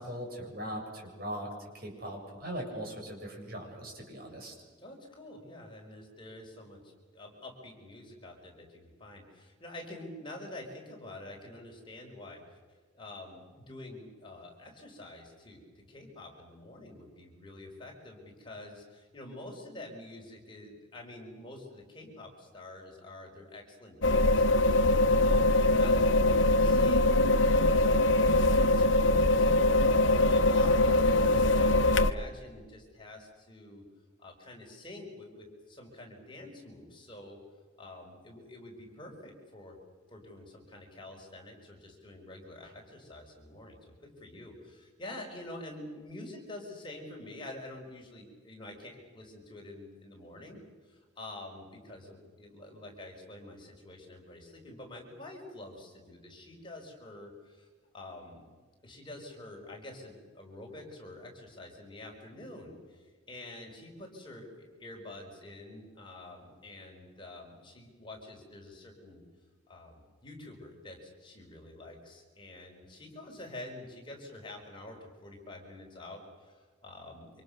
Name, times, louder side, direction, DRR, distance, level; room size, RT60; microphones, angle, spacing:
voice 1, 0.0-1.5 1.7-4.5, equal, 50° right, 1 dB, 7.2 m, -40 dB
voice 2, 4.8-33.9 34.2-37.4 37.8-39.8 40.1-57.7 57.9-58.5 58.8-69.2 69.7-77.4, left 1 dB, 25° left, 0 dB, 5.2 m, -47 dB
sound 1, 24.0-32.1, left 2 dB, 70° left, 1.2 m, -23 dB
28.0 x 26.5 x 6.7 m, 1.4 s
head